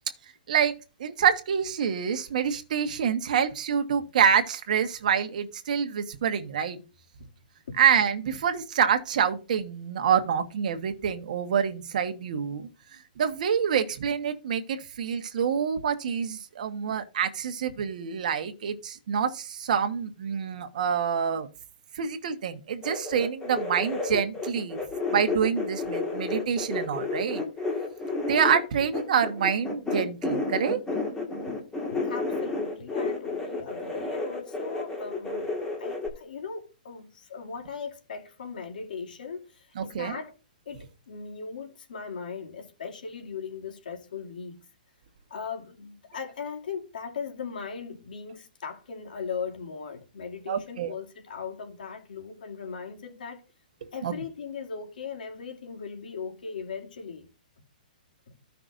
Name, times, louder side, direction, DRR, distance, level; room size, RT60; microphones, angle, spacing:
voice 1, 1.0-6.8 7.8-12.7 13.2-21.5 21.9-24.8 25.1-27.4 28.3-30.8 39.7-40.2 50.5-50.9 54.0-54.1, right 7 dB, 60° right, 1.3 m, -26 dB
sound 1, 22.8-36.1, left 3 dB, 10° left, 1.8 m, -31 dB
voice 2, 31.9-40.3 40.7-44.6 45.3-53.4 53.9-57.3, left 6 dB, 75° left, 2.6 m, -38 dB
15.0 x 5.8 x 2.6 m
hypercardioid pair, 155°, 5 cm